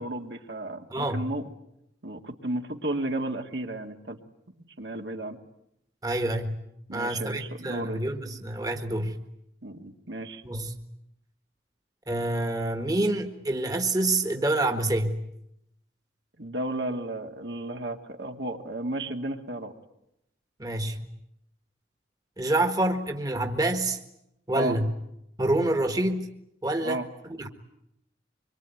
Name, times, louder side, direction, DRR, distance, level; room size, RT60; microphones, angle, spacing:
voice 1, 0.0-1.4 2.0-4.2 4.5-5.4 6.9-8.0 9.6-10.4 16.4-19.7 24.5-24.8 26.8-27.0, right 1 dB, 65° right, 3 dB, 2.2 m, -33 dB
voice 2, 0.9-1.3 6.0-6.6 6.9-9.2 10.4-10.8 12.1-15.2 20.6-21.0 22.4-24.0 24.5-24.9 25.4-26.3 26.6-27.5, right 2 dB, 20° right, 5 dB, 1.6 m, -27 dB
25.0 x 23.5 x 9.3 m, 0.81 s
head